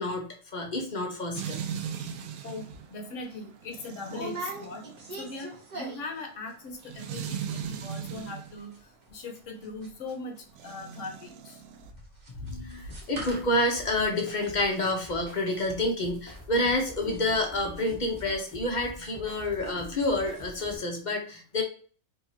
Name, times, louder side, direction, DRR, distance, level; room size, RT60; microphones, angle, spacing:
voice 1, 0.0-1.6 12.4-21.6, left 1 dB, 40° left, 2 dB, 0.8 m, -28 dB
sound 1, 1.3-8.6 10.5-11.9, right 8 dB, 85° right, 1.1 m, -39 dB
voice 2, 2.4-4.8 5.2-8.7 9.1-10.3 10.6-11.6, left 2 dB, 60° left, 4 dB, 1.1 m, -40 dB
sound 2, 2.7-2.8 3.2-3.4 4.0-6.2 6.5-6.9 7.1-7.2 7.4-7.8 8.1-19.7 20.0-20.4 20.7-20.8, right 1 dB, 35° right, 1.0 m, -42 dB
sound 3, 12.8-20.8, left 1 dB, 10° left, 1.5 m, -47 dB
4.6 x 2.8 x 2.7 m, 0.41 s
omnidirectional pair, 1.5 m